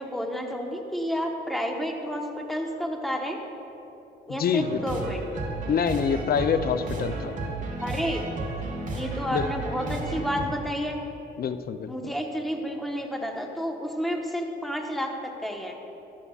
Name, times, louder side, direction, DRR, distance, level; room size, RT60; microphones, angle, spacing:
voice 1, 0.0-3.4 4.3-5.2 7.8-8.2 8.9-11.0 11.9-15.7, equal, ahead, 1 dB, 1.2 m, -30 dB
voice 2, 4.3-4.8 5.7-7.4 9.3-9.5 11.4-12.1, left 7 dB, 50° left, 11 dB, 0.5 m, -26 dB
sound 1, 4.6-10.4, right 2 dB, 40° right, 2.0 m, -33 dB
14.0 x 11.0 x 2.4 m, 3.0 s
cardioid pair, 90°, 20 cm